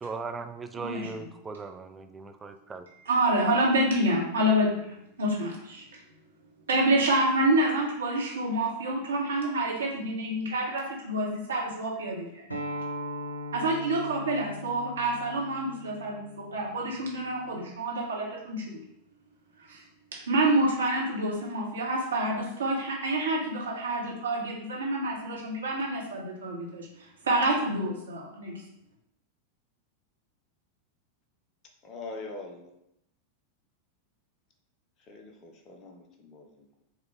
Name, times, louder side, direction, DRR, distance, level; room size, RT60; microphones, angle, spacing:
voice 1, 0.0-2.9, right 4 dB, 15° right, 7 dB, 0.3 m, -38 dB
voice 2, 0.8-1.3 2.9-4.9 5.2-6.0 6.7-12.4 13.5-18.8 19.7-19.8 20.3-26.9 27.2-28.6, right 1 dB, 65° right, -3 dB, 1.1 m, -28 dB
Acoustic guitar, 12.5-17.7, left 1 dB, 90° right, 0.6 m, -40 dB
voice 3, 31.8-32.7 35.1-36.8, left 3 dB, 35° left, 3 dB, 0.7 m, -43 dB
4.8 x 2.4 x 3.3 m, 0.78 s
figure-of-eight pair, 90°, 0 cm